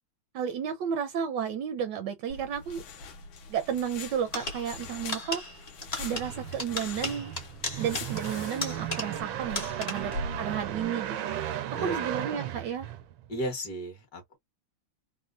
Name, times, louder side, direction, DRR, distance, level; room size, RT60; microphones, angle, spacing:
voice 1, 0.3-2.8 3.5-5.4 6.0-7.3 7.8-12.9, right 8 dB, 75° right, 1.1 m, -32 dB
sound 1, 2.3-10.8, left 3 dB, 85° left, 1.7 m, -42 dB
sound 2, 4.3-9.3 9.6-10.2, left 2 dB, 35° left, 0.6 m, -36 dB
sound 3, 5.9-13.5, right 11 dB, 90° right, 1.5 m, -36 dB
voice 2, 11.8-12.2 13.3-14.4, right 1 dB, 55° left, 1.7 m, -35 dB
4.3 x 2.1 x 2.4 m
omnidirectional pair, 2.1 m